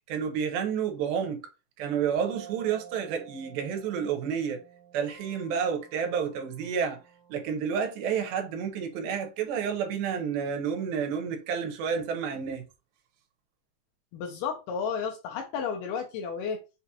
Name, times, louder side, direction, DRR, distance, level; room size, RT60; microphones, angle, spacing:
voice 1, 0.1-1.4 1.8-4.6 4.9-7.0 7.3-12.6, right 7 dB, 80° right, 2.6 m, -30 dB
sound 1, 2.1-7.4, right 9 dB, 55° right, 1.1 m, -50 dB
voice 2, 14.1-16.6, left 6 dB, 80° left, 2.0 m, -32 dB
5.9 x 2.4 x 2.8 m
omnidirectional pair, 4.3 m